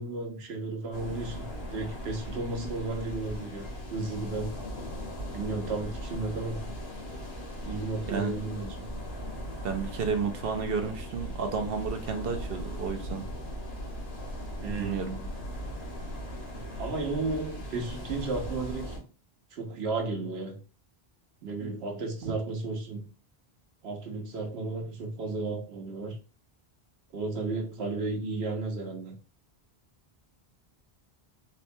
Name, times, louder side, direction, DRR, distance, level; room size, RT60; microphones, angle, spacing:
voice 1, 0.0-4.6 5.3-6.7 7.6-8.9 14.6-15.3 16.8-19.0 19.5-20.6 21.4-23.1 23.8-26.2 27.1-29.2, right 3 dB, 90° right, 1.1 m, -34 dB
sound 1, 0.9-19.0, equal, 90° left, 1.5 m, -38 dB
voice 2, 9.6-13.3 14.8-15.1 22.2-22.3, right 6 dB, 70° right, 0.8 m, -31 dB
4.0 x 2.2 x 2.6 m
omnidirectional pair, 1.0 m